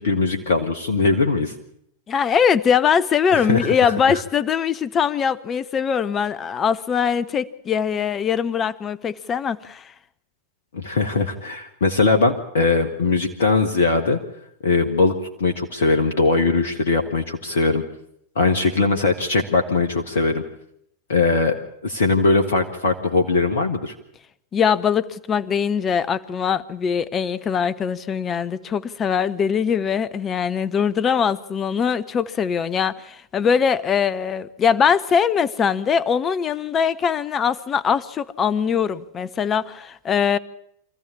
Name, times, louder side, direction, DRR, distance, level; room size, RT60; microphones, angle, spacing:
voice 1, 0.0-1.5 3.3-4.2 10.7-14.2 14.6-17.8 18.3-20.4 21.1-21.6 21.8-23.9, left 3 dB, 65° left, 5 dB, 1.4 m, -20 dB
voice 2, 2.1-9.9 24.5-40.4, left 7 dB, 25° left, 17 dB, 0.8 m, -22 dB
25.0 x 14.5 x 8.6 m, 0.73 s
figure-of-eight pair, 90°, 0 cm